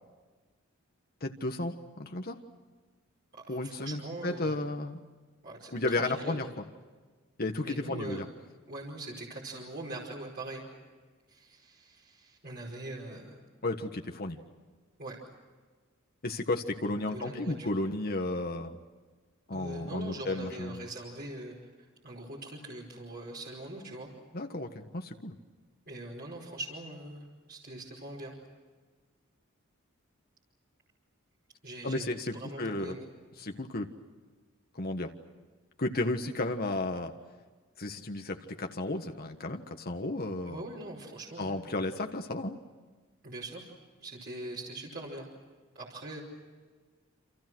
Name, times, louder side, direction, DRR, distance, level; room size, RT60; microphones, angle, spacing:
voice 1, 1.2-2.4 3.5-5.0 5.7-6.7 7.4-8.3 13.6-14.4 16.2-18.8 19.5-20.9 24.3-25.3 31.8-33.0 33.4-33.9 34.7-35.1 35.8-37.1 37.8-40.6 41.4-42.6, left 2 dB, 50° left, 4 dB, 1.5 m, -33 dB
voice 2, 3.3-4.7 5.4-6.4 7.6-8.2 8.7-10.6 11.3-13.4 15.0-15.2 17.1-17.7 19.5-21.7 22.0-24.1 25.9-28.3 31.6-33.0 40.5-41.5 43.2-43.7 44.0-45.3 45.7-46.2, right 1 dB, 50° right, -3 dB, 5.1 m, -42 dB
28.5 x 28.0 x 6.3 m, 1.4 s
head